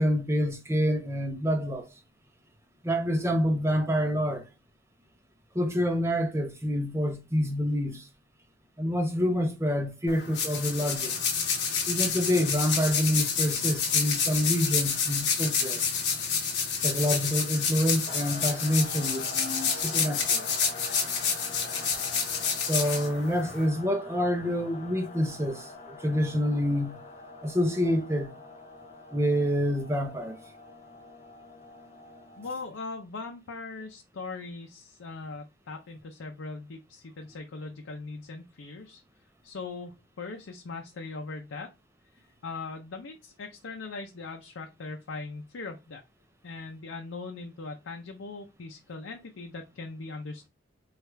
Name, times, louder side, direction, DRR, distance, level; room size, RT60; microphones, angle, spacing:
voice 1, 0.0-1.9 2.8-4.4 5.5-8.1 8.8-11.2 11.9-15.8 16.8-20.5 22.7-27.0 27.4-28.3 29.1-30.4, equal, 15° right, 0.5 m, -27 dB
sound 1, 10.1-23.6, left 6 dB, 60° left, 1.1 m, -29 dB
sound 2, 18.1-32.8, left 2 dB, 35° left, 0.6 m, -45 dB
voice 2, 32.4-39.0 39.4-41.7 42.1-46.0 46.4-50.5, left 3 dB, 80° left, 0.5 m, -40 dB
4.6 x 2.4 x 3.2 m
head